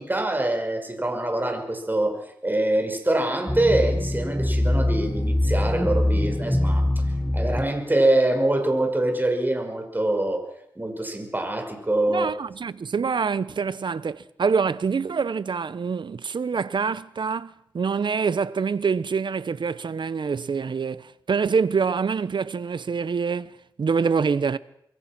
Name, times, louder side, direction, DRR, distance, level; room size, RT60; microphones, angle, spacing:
voice 1, 0.0-2.2 2.4-7.0 7.3-10.4 10.8-12.3, right 1 dB, 25° right, 5.7 m, -24 dB
sound 1, 3.5-7.7, left 1 dB, ahead, 1.5 m, -23 dB
voice 2, 12.1-24.6, right 5 dB, 70° right, 0.9 m, -25 dB
25.0 x 23.0 x 6.1 m
cardioid pair, 55°, 8 cm